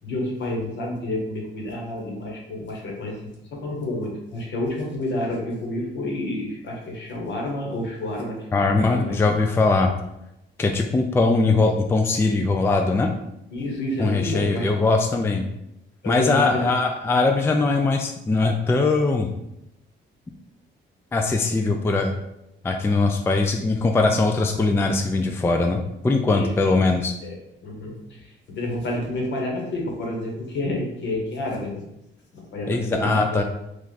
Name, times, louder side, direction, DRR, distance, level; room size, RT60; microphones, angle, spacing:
voice 1, 0.0-3.2 3.5-9.2 13.5-14.7 16.0-16.8 26.3-26.8 27.2-31.8 32.3-33.4, left 1 dB, 65° left, -1 dB, 1.2 m, -29 dB
voice 2, 8.5-9.9 10.6-13.1 14.0-15.4 16.1-19.3 21.1-22.1 22.6-27.1 32.7-33.4, left 3 dB, 10° left, 4 dB, 0.3 m, -21 dB
3.2 x 2.4 x 4.0 m, 0.84 s
cardioid pair, 90°, 20 cm